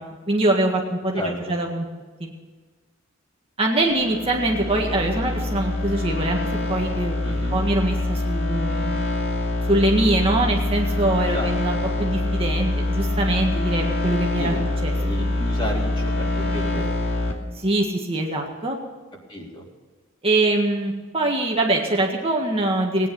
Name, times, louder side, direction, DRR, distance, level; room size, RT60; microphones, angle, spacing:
voice 1, 0.0-1.9 2.2-2.3 3.6-6.4 6.7-8.9 9.7-14.5 14.8-14.9 17.6-18.8 20.2-23.1, right 2 dB, 30° right, 0 dB, 1.7 m, -23 dB
sound 1, 3.9-17.3, left 1 dB, 55° left, 2.6 m, -25 dB
voice 2, 7.2-7.6 11.3-11.6 14.4-14.6 15.0-16.9 19.3-19.7, equal, 25° left, -2 dB, 3.5 m, -32 dB
18.5 x 9.8 x 6.9 m, 1.4 s
head